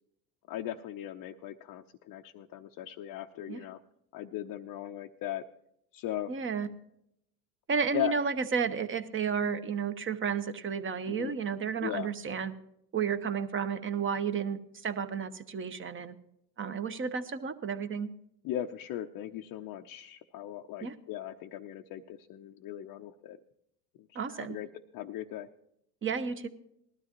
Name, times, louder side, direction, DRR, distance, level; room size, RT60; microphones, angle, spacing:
voice 1, 0.5-3.8 4.1-5.4 5.9-6.3 7.9-8.1 11.1-11.4 11.8-12.1 18.4-23.4 24.0-24.7 24.9-25.5, left 12 dB, 45° left, 2 dB, 0.6 m, -38 dB
voice 2, 6.3-6.7 7.7-12.5 12.9-16.2 16.6-18.1 20.8-21.0 24.1-24.6 26.0-26.5, right 6 dB, 25° right, 10 dB, 0.9 m, -32 dB
19.0 x 12.5 x 3.0 m, 0.76 s
hypercardioid pair, 90°, 47 cm